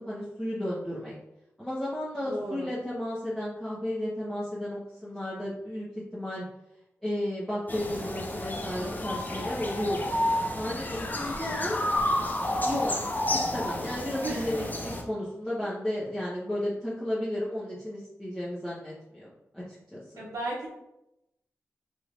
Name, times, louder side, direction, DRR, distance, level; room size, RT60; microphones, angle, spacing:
voice 1, 0.1-1.1 1.6-5.8 6.1-6.4 7.0-10.2 10.5-11.8 12.6-20.3, left 1 dB, 5° left, -10 dB, 1.1 m, -33 dB
voice 2, 2.2-2.7 14.2-14.7 20.2-20.7, right 1 dB, 90° right, -5 dB, 0.7 m, -35 dB
sound 1, 7.7-15.0, left 1 dB, 35° left, 0.7 m, -30 dB
3.2 x 2.9 x 2.5 m, 0.87 s
cardioid pair, 45°, 6 cm